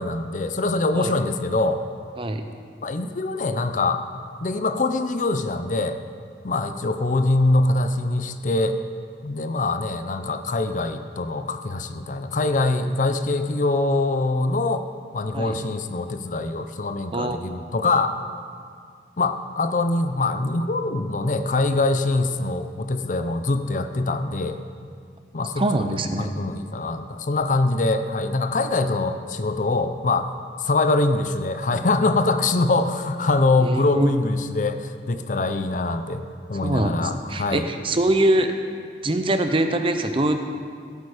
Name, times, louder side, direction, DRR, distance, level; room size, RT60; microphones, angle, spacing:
voice 1, 0.0-1.8 2.8-4.0 4.4-6.0 6.4-8.8 9.2-14.8 15.1-18.2 19.2-24.6 25.3-30.3 30.6-36.2 36.5-37.7, left 2 dB, 45° left, 9 dB, 0.5 m, -23 dB
voice 2, 25.6-26.3 33.6-34.1 36.6-38.5 39.0-40.4, right 1 dB, 30° right, 7 dB, 0.6 m, -23 dB
15.5 x 8.4 x 4.9 m, 2.1 s
head